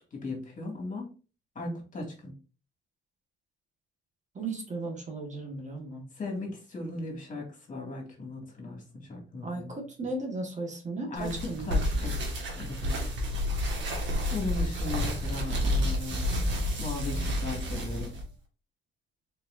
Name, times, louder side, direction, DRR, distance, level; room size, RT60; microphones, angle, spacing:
voice 1, 0.1-1.1 1.6-2.3 6.1-9.8 11.1-12.2 12.6-13.0 14.3-16.4 16.8-18.1, left 2 dB, 40° left, 0 dB, 2.2 m, -37 dB
voice 2, 4.4-6.0 9.4-11.7, right 2 dB, 35° right, 1 dB, 1.6 m, -36 dB
sound 1, 11.2-18.2, left 1 dB, 65° right, 1.7 m, -30 dB
4.5 x 4.1 x 2.7 m, 0.35 s
cardioid pair, 90°, 20 cm